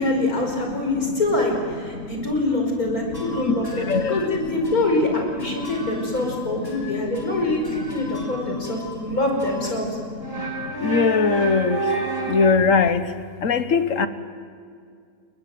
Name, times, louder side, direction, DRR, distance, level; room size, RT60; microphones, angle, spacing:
voice 1, 0.0-9.9, left 2 dB, 85° left, 1 dB, 5.7 m, -24 dB
sound 1, 3.1-4.4 4.6-5.1 5.4-9.1 9.4-9.8 10.2-12.5, right 2 dB, 15° left, 3.6 m, -32 dB
voice 2, 10.8-11.8 12.3-13.0 13.4-14.1, left 5 dB, 65° left, 12 dB, 1.5 m, -19 dB
30.0 x 21.0 x 7.8 m, 2.3 s
omnidirectional pair, 1.5 m